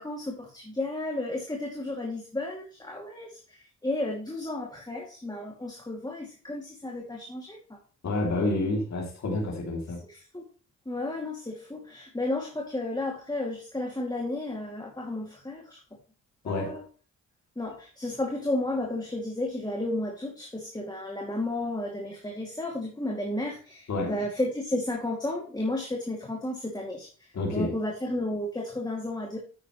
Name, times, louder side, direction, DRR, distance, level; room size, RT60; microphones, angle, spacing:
voice 1, 0.0-7.8 10.1-10.4 10.9-15.8 16.4-16.8 17.6-29.4, left 1 dB, 15° left, -1 dB, 2.5 m, -33 dB
voice 2, 8.0-10.0 16.4-16.8 23.9-24.2 27.3-27.8, left 2 dB, 60° left, 0 dB, 2.9 m, -29 dB
9.8 x 8.3 x 3.2 m, 0.39 s
cardioid pair, 60°, 32 cm